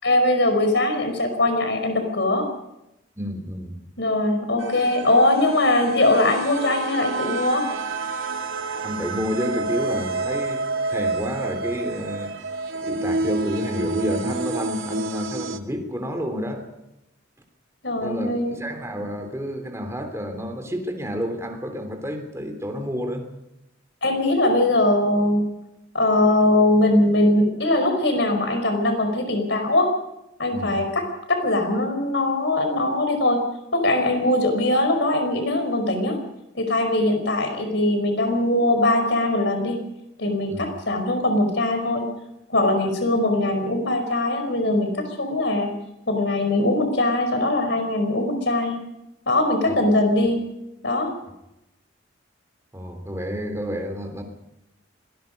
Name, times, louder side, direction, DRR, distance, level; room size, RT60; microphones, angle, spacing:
voice 1, 0.0-2.5 4.0-7.6 17.8-18.6 24.0-25.4 25.9-29.9 30.4-31.0 31.3-33.4 33.7-36.2 36.6-39.8 40.2-42.1 42.5-45.7 46.1-48.8 49.3-50.5 50.8-51.1, left 1 dB, 60° left, 6 dB, 5.2 m, -21 dB
voice 2, 3.2-3.8 8.8-10.6 10.9-12.3 12.7-16.6 17.9-23.3 30.5-30.8 40.5-40.7 49.6-49.8 52.7-54.2, equal, 15° right, 5 dB, 3.4 m, -30 dB
sound 1, 4.6-15.6, right 3 dB, 85° right, 1.8 m, -29 dB
25.5 x 20.0 x 5.4 m, 0.90 s
head